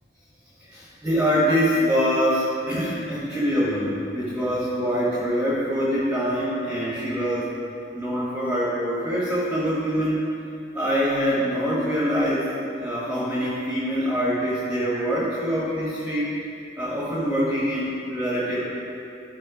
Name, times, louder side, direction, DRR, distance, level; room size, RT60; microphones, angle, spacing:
voice 1, 0.6-7.5 7.9-10.2 10.7-12.5 12.8-16.5 16.8-18.6, equal, 5° right, -8 dB, 1.3 m, -24 dB
12.0 x 4.5 x 4.9 m, 2.5 s
head